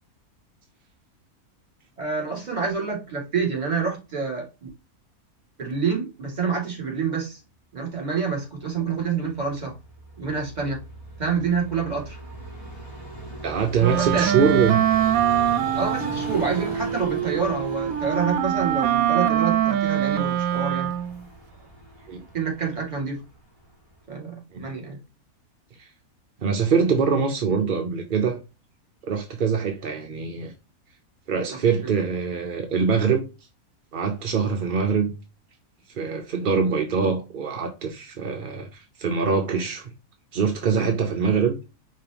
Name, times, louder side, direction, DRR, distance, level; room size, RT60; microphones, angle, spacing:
voice 1, 2.0-4.7 5.6-7.4 7.7-9.7 10.2-10.8 11.2-12.2 14.0-14.4 15.7-20.9 22.3-23.2 24.1-25.0 31.8-31.9, right 5 dB, 30° right, 2.4 m, -27 dB
Vehicle, 9.3-24.0, equal, 25° left, 2.1 m, -39 dB
voice 2, 13.4-14.8 22.1-22.2 24.5-24.7 25.8-25.9 26.4-28.4 29.0-30.5 31.3-33.2 33.9-35.1 36.0-39.9 40.3-41.5, right 5 dB, 50° right, 0.7 m, -23 dB
Wind instrument woodwind instrument, 13.8-21.2, right 11 dB, 70° right, 1.1 m, -23 dB
5.2 x 3.3 x 2.8 m
omnidirectional pair, 1.6 m